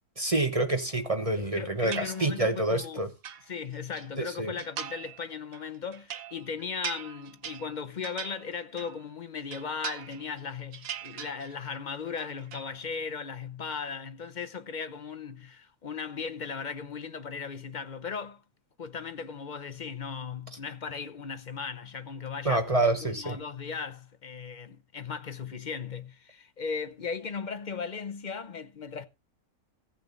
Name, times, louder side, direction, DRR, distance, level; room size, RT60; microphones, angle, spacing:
voice 1, 0.2-3.1 4.2-4.5 22.4-23.4, right 2 dB, 25° right, 1.0 m, -27 dB
voice 2, 1.4-3.0 3.5-18.4 18.8-22.6 23.0-29.1, left 5 dB, 40° left, 0.7 m, -37 dB
sound 1, 1.9-2.6 3.0-4.1 4.6-5.2 5.5-9.0 9.4-10.4 10.7-11.8 12.1-12.7, right 9 dB, 70° right, 1.3 m, -41 dB
15.5 x 7.7 x 3.9 m
omnidirectional pair, 1.6 m